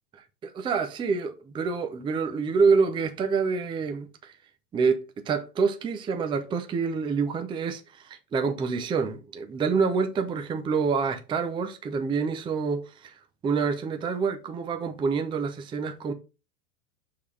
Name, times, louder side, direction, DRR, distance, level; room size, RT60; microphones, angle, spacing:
voice 1, 0.1-4.3 4.7-16.1, right 5 dB, 10° right, 0.5 m, -27 dB
6.6 x 3.8 x 4.6 m
supercardioid pair, 130°, 48 cm